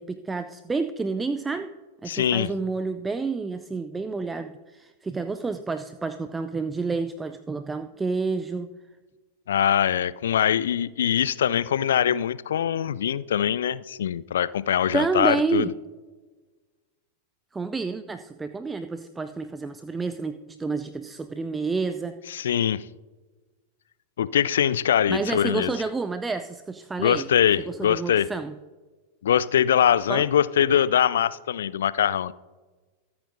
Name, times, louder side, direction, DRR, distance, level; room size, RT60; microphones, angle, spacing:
voice 1, 0.0-1.7 2.0-8.7 14.9-15.7 17.5-22.2 25.1-27.3 27.6-28.5 30.1-30.3, right 4 dB, 10° right, 11 dB, 0.4 m, -29 dB
voice 2, 2.1-2.5 9.5-15.7 22.3-22.8 24.2-25.8 27.0-28.3 29.2-32.3, left 9 dB, 65° left, 18 dB, 0.4 m, -23 dB
24.0 x 8.8 x 2.7 m, 1.3 s
figure-of-eight pair, 90°, 0 cm